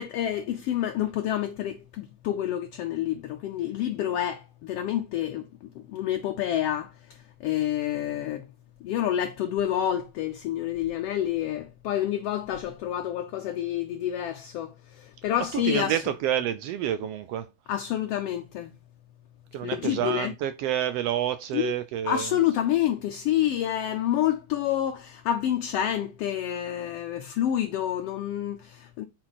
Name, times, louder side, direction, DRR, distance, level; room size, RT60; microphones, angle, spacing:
voice 1, 0.0-5.5 5.7-6.9 7.4-8.5 8.8-16.0 17.7-18.7 19.6-20.3 21.5-21.7 22.0-29.0, left 11 dB, 70° left, 1.5 m, -28 dB
voice 2, 15.5-17.5 19.5-22.3, right 11 dB, 80° right, 1.4 m, -28 dB
8.5 x 4.4 x 4.0 m
omnidirectional pair, 3.3 m